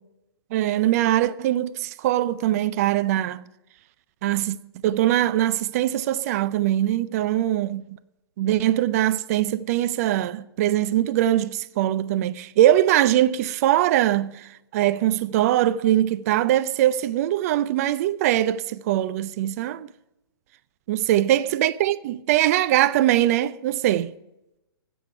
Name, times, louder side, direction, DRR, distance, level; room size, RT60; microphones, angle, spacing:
voice 1, 0.5-3.4 4.2-4.6 4.8-7.8 8.4-19.9 20.9-24.1, right 13 dB, 40° right, 0.5 m, -22 dB
13.0 x 9.2 x 4.7 m
figure-of-eight pair, 120°, 13 cm